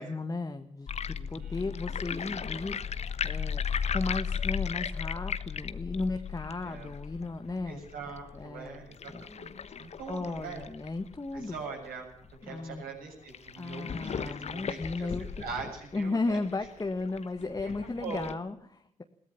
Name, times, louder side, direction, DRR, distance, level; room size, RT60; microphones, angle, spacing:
voice 1, 0.0-2.7 3.2-3.6 3.9-7.9 8.3-9.2 9.8-11.6 12.4-12.8 13.5-15.2 15.9-19.0, left 3 dB, 20° left, 6 dB, 1.6 m, -35 dB
sound 1, 0.9-11.9 12.3-12.4 12.6-12.7 13.3-18.3, left 7 dB, 40° left, 1.2 m, -36 dB
voice 2, 1.2-1.7 6.6-6.9 7.7-10.6 11.3-12.1 12.4-17.0 17.6-18.3, right 5 dB, 65° right, 1 dB, 7.1 m, -43 dB
22.0 x 17.5 x 7.4 m, 0.67 s
figure-of-eight pair, 40°, 16 cm